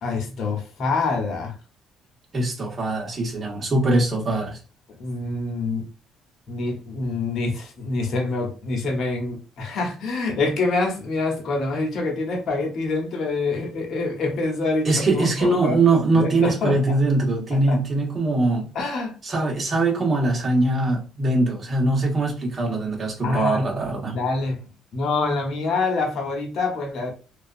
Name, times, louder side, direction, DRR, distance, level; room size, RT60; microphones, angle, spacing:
voice 1, 0.0-1.5 5.0-5.8 6.5-15.8 16.1-16.8 17.7-17.8 18.7-19.1 23.2-23.7 24.1-24.6 24.9-27.1, left 3 dB, 60° left, 0.9 m, -26 dB
voice 2, 2.3-4.6 14.8-18.7 19.2-24.2, right 2 dB, 40° right, 1.2 m, -22 dB
2.7 x 2.3 x 2.4 m
supercardioid pair, 80°, 0 cm